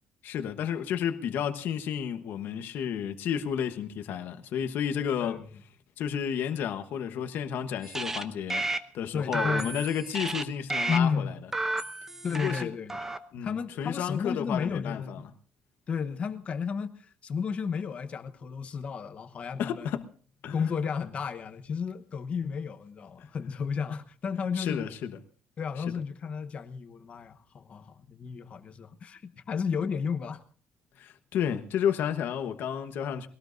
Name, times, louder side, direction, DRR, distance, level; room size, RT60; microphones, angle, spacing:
voice 1, 0.2-5.4 6.0-8.7 8.9-11.3 12.3-12.7 13.3-15.2 19.6-20.1 20.4-20.5 24.6-25.2 31.0-33.3, left 8 dB, 60° left, 1.1 m, -31 dB
sound 1, 7.8-8.2 8.5-8.8 9.3-10.4 10.7-11.0 11.5-12.6 12.9-13.2, right 2 dB, 10° right, 0.8 m, -32 dB
voice 2, 9.1-9.8 10.9-11.3 12.2-12.9 13.4-15.3 15.9-19.9 20.5-24.9 25.6-30.4, left 6 dB, 35° left, 1.1 m, -32 dB
21.5 x 18.0 x 2.6 m
cardioid pair, 170°, 4 cm